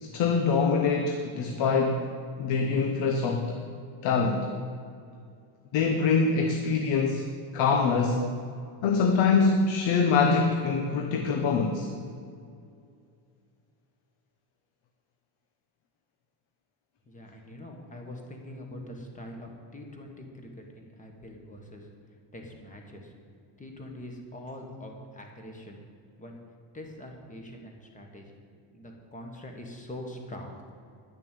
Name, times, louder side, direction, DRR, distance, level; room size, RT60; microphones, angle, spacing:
voice 1, 0.0-2.1 2.4-3.6 4.0-4.5 5.7-7.3 7.5-8.3 8.8-11.9, left 4 dB, 65° left, 4 dB, 1.1 m, -24 dB
voice 2, 17.1-21.9 22.3-23.1 23.6-25.8 26.2-26.4 26.7-28.4 28.7-30.5, left 1 dB, 15° left, 2 dB, 1.6 m, -43 dB
10.5 x 6.7 x 8.5 m, 2.4 s
cardioid pair, 155°, 48 cm